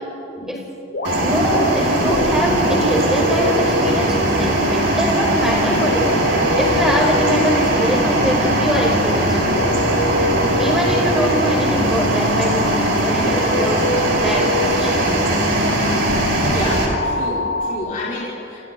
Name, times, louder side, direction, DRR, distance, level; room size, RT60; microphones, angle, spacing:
sound 1, 0.9-17.7, left 2 dB, 70° left, 5.0 m, -26 dB
sound 2, 1.0-16.9, right 1 dB, 70° right, 5.8 m, -19 dB
voice 1, 1.2-6.1 6.5-9.4 10.6-13.8 14.2-14.9, equal, ahead, -2 dB, 5.6 m, -23 dB
voice 2, 16.4-18.6, left 2 dB, 40° left, -7 dB, 5.7 m, -29 dB
29.0 x 28.5 x 4.1 m, 2.9 s
head